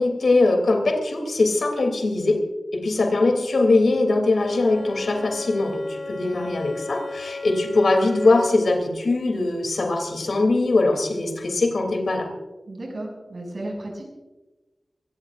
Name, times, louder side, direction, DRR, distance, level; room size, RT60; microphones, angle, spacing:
voice 1, 0.0-2.4 2.7-12.3, left 2 dB, 80° left, 4 dB, 2.9 m, -21 dB
Bowed string instrument, 4.4-8.8, left 3 dB, 55° left, 3.0 m, -36 dB
voice 2, 12.7-14.1, right 1 dB, 60° right, 0 dB, 6.6 m, -34 dB
23.5 x 19.0 x 2.5 m, 1.1 s
wide cardioid pair, 60°, 0 cm